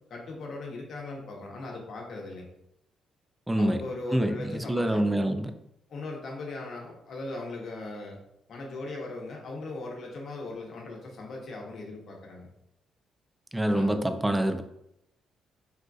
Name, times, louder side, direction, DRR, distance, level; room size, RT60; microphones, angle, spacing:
voice 1, 0.1-2.5 3.6-5.1 5.9-8.2 8.5-12.5 13.7-13.9, left 2 dB, 60° left, -1 dB, 0.8 m, -39 dB
voice 2, 3.5-3.8 4.1-5.5 13.5-14.6, right 1 dB, 10° right, 7 dB, 0.3 m, -26 dB
3.6 x 2.5 x 2.3 m, 0.80 s
cardioid pair, 90°, 0 cm